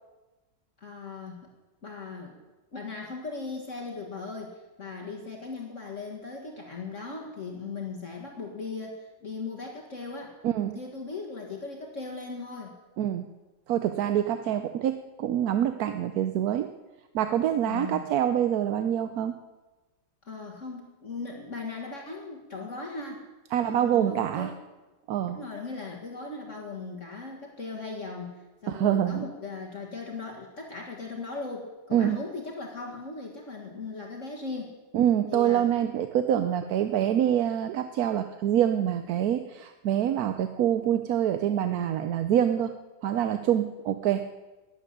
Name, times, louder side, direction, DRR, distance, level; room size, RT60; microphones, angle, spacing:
voice 1, 0.8-1.5 1.8-2.4 2.7-10.3 10.7-12.8 17.7-18.0 20.2-23.3 23.6-24.6 25.3-28.3 28.6-34.8 35.3-35.7, left 4 dB, 45° left, 0 dB, 2.0 m, -38 dB
voice 2, 10.4-10.8 13.0-13.3 13.7-16.7 17.1-19.3 23.5-24.5 25.1-25.4 28.7-29.2 31.9-32.2 34.9-42.7 43.0-44.3, right 10 dB, 65° right, 9 dB, 1.0 m, -26 dB
13.5 x 8.8 x 10.0 m, 1.2 s
omnidirectional pair, 1.9 m